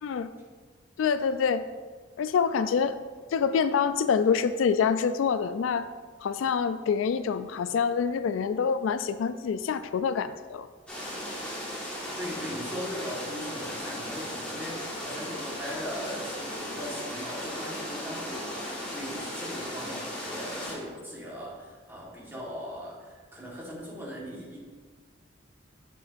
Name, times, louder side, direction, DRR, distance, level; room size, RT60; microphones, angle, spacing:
voice 1, 0.0-0.3 1.0-1.7 2.2-3.0 3.3-5.9 6.2-10.7, left 6 dB, 85° left, 12 dB, 0.3 m, -26 dB
sound 1, 10.9-20.7, left 1 dB, 5° left, 1.8 m, -36 dB
voice 2, 12.2-24.6, equal, 10° right, -5 dB, 1.5 m, -39 dB
7.3 x 6.2 x 2.6 m, 1.5 s
head